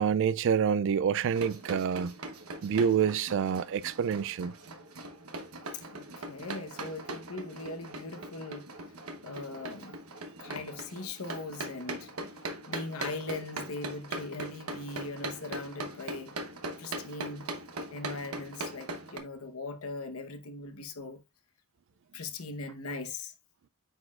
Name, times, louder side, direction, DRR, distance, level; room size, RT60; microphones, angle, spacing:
voice 1, 0.0-2.1 2.6-4.5, right 7 dB, 60° right, 0.3 m, -27 dB
sound 1, 1.3-19.2, right 2 dB, 80° right, 1.1 m, -41 dB
voice 2, 5.9-8.7 9.2-10.0 10.4-12.1 12.7-16.3 16.8-17.5 17.9-21.2 22.1-23.3, left 3 dB, 75° left, 1.0 m, -40 dB
9.0 x 4.3 x 2.4 m
head